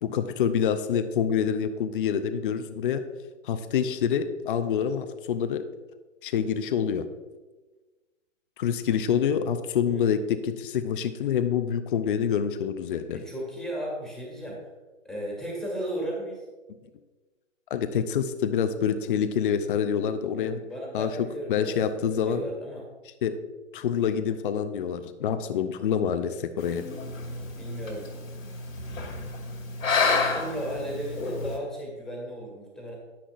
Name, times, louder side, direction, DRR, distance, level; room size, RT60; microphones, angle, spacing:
voice 1, 0.0-3.0 3.4-5.6 6.2-7.1 8.6-13.2 17.7-20.6 20.9-21.1 21.5-22.4 23.2-23.3 23.7-26.8, left 8 dB, 45° left, 9 dB, 0.6 m, -26 dB
voice 2, 13.1-14.6 15.0-16.5 20.3-21.7 22.0-22.8 27.6-28.1 30.3-32.9, equal, ahead, -3 dB, 1.8 m, -35 dB
sound 1, 26.6-31.6, left 4 dB, 85° left, 2.1 m, -30 dB
10.0 x 10.0 x 2.5 m, 1.2 s
hypercardioid pair, 145°, 38 cm